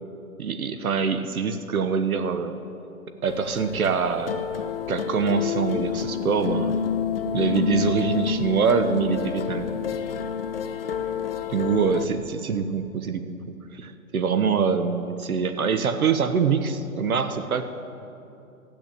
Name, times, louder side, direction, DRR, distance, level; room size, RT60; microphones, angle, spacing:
voice 1, 0.4-2.6 3.2-4.5 4.9-6.8 7.3-9.8 11.5-13.4 13.7-17.6, right 6 dB, 70° right, 9 dB, 1.0 m, -24 dB
sound 1, 3.2-12.1, left 8 dB, 40° left, 0.6 m, -29 dB
14.0 x 8.6 x 8.6 m, 2.7 s
hypercardioid pair, 160°, 44 cm